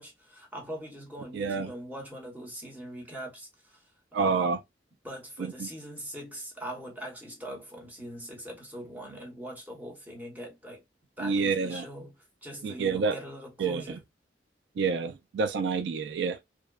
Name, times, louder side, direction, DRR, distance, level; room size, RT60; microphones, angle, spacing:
voice 1, 0.0-3.9 4.1-4.5 5.0-10.8 11.2-14.0, equal, 10° right, 0.9 m, -42 dB
voice 2, 1.3-1.7 4.1-4.6 5.6-5.7 11.2-11.9 12.6-13.2 13.6-13.8 14.8-16.4, right 5 dB, 70° right, 0.3 m, -28 dB
2.7 x 2.1 x 2.2 m
head